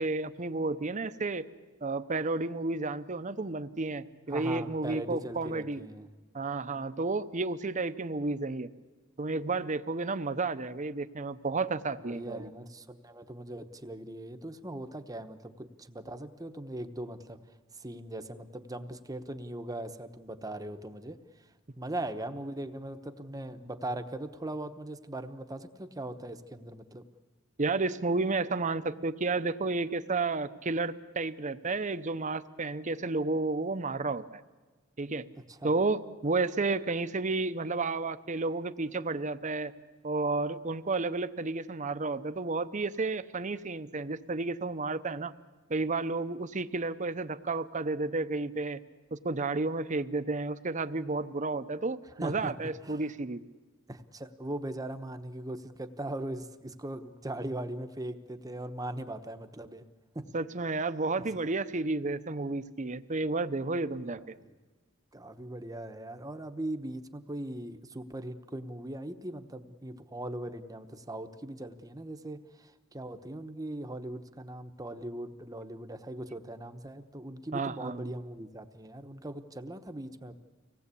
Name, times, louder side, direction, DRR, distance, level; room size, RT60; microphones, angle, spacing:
voice 1, 0.0-1.5 1.8-5.8 6.3-8.7 9.2-12.5 27.6-34.4 35.0-35.3 35.6-39.7 40.0-45.3 45.7-48.8 49.1-53.4 60.3-64.2 77.5-78.1, right 3 dB, 35° right, 12 dB, 0.8 m, -31 dB
voice 2, 4.3-6.1 12.0-17.4 17.7-21.2 21.8-27.1 35.5-35.7 52.2-52.5 52.8-53.0 53.9-59.8 60.1-60.3 61.2-61.3 64.1-64.6 65.1-80.3, right 1 dB, 20° right, 8 dB, 1.0 m, -40 dB
25.0 x 18.5 x 8.4 m, 1.3 s
head